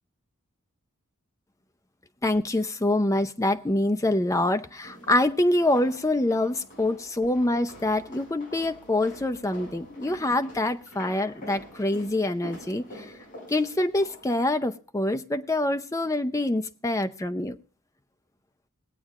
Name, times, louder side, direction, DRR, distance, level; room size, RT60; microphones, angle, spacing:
voice 1, 2.2-13.1 13.5-17.6, left 1 dB, 15° left, 9 dB, 0.6 m, -25 dB
sound 1, 4.8-14.4, equal, 40° left, 6.0 m, -46 dB
21.5 x 8.5 x 2.5 m, 0.43 s
head